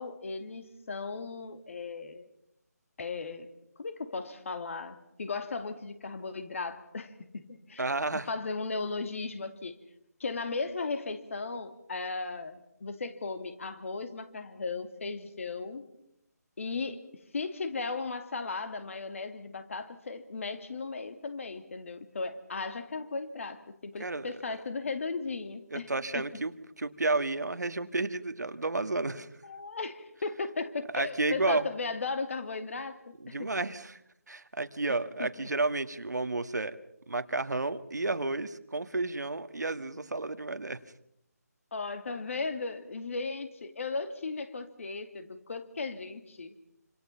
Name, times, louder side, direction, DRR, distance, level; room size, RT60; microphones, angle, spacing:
voice 1, 0.0-2.2 3.0-3.5 3.8-9.7 10.2-15.9 16.6-17.0 17.3-25.9 26.1-26.3 29.4-33.5 35.2-35.5 41.7-46.5, left 4 dB, 50° left, 9 dB, 2.6 m, -36 dB
voice 2, 7.8-8.3 24.0-24.3 25.7-29.3 30.9-31.7 33.2-34.0 34.3-36.8 37.1-40.8, right 2 dB, 85° right, 10 dB, 1.8 m, -31 dB
27.0 x 26.5 x 5.7 m, 0.78 s
figure-of-eight pair, 165°, 9 cm